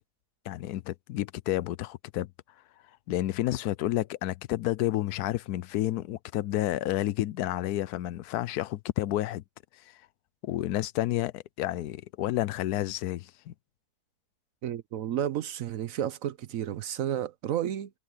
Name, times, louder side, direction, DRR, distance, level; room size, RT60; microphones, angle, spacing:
voice 1, 0.5-2.3 3.1-9.4 10.4-13.5, left 14 dB, 85° left, 1.1 m, -30 dB
voice 2, 14.6-17.9, right 10 dB, 65° right, 1.0 m, -32 dB
omnidirectional pair, 1.6 m